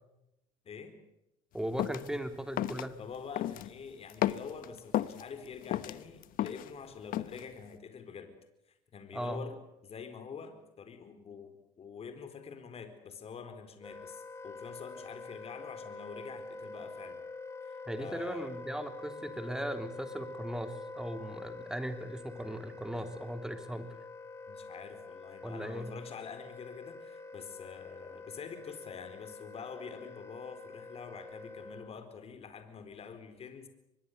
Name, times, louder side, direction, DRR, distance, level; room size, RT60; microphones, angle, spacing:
voice 1, 1.5-3.0 9.1-9.4 17.9-23.9 25.4-25.9, equal, 5° right, 7 dB, 3.2 m, -38 dB
sound 1, 1.8-2.1 2.6-2.8 3.4-3.7 4.1-5.2 5.6-6.7 7.1-7.4, left 13 dB, 60° left, 1.2 m, -32 dB
voice 2, 3.0-8.4 8.9-17.2 17.6-18.5 24.5-33.7, left 6 dB, 40° left, 8 dB, 4.2 m, -46 dB
Wind instrument woodwind instrument, 13.8-32.0, left 3 dB, 15° left, 2.7 m, -46 dB
24.5 x 21.5 x 8.3 m, 0.89 s
cardioid pair, 120°, 16 cm